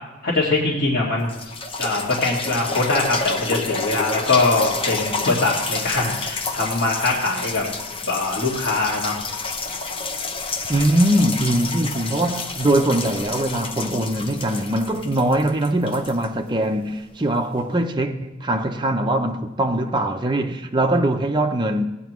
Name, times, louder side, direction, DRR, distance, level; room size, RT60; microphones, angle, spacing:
voice 1, 0.2-1.3 1.8-7.6 8.1-9.2, left 2 dB, 50° left, 2.0 m, -22 dB
sound 1, 0.7-0.8 1.2-17.0 17.6-17.7, left 3 dB, 30° left, 0.7 m, -29 dB
voice 2, 10.7-21.8, right 1 dB, 25° right, 0.7 m, -22 dB
16.5 x 9.2 x 3.1 m
head